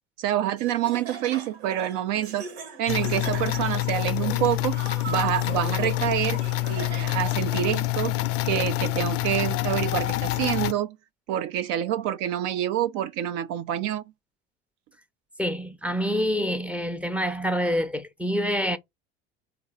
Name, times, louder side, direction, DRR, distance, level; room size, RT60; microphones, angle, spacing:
voice 1, 0.2-2.5 2.8-4.8 5.1-6.4 6.7-8.2 8.4-11.0 11.3-14.0, right 11 dB, 55° right, 0.5 m, -27 dB
Laughter, 0.6-7.4, right 5 dB, 75° right, 1.0 m, -40 dB
sound 1, 2.9-10.7, left 18 dB, 45° left, 0.4 m, -27 dB
voice 2, 15.4-18.8, equal, 5° right, 0.5 m, -26 dB
3.7 x 2.5 x 4.4 m
hypercardioid pair, 75°, 32 cm